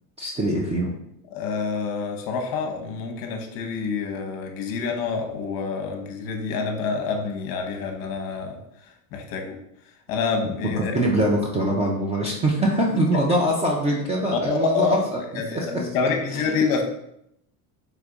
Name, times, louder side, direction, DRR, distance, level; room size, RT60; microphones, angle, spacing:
voice 1, 0.2-0.9 10.8-15.0 15.5-15.9 16.3-16.5, right 1 dB, 15° right, -2 dB, 0.4 m, -23 dB
voice 2, 1.3-8.6 9.1-9.6 10.1-10.9 14.5-16.8, left 5 dB, 50° left, 3 dB, 0.8 m, -27 dB
3.4 x 3.3 x 3.8 m, 0.78 s
supercardioid pair, 125°, 45 cm